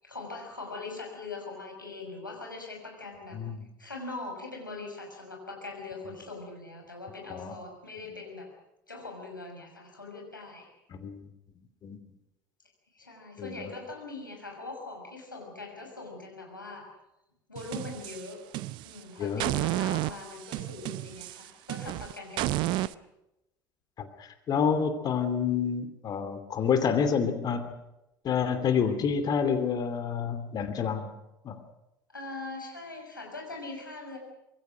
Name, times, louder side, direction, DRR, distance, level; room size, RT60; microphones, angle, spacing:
voice 1, 0.0-3.4 3.8-8.5 8.9-10.7 12.9-16.9 17.5-18.4 18.8-22.9 32.1-34.2, left 3 dB, 85° left, 1 dB, 6.0 m, -41 dB
sound 1, 17.6-19.0 19.4-22.9, right 16 dB, 50° right, 0.7 m, -32 dB
voice 2, 24.0-27.7 28.2-31.1 31.4-31.6, left 6 dB, 40° left, 9 dB, 2.8 m, -28 dB
25.5 x 22.0 x 6.3 m, 0.91 s
figure-of-eight pair, 65°, 10 cm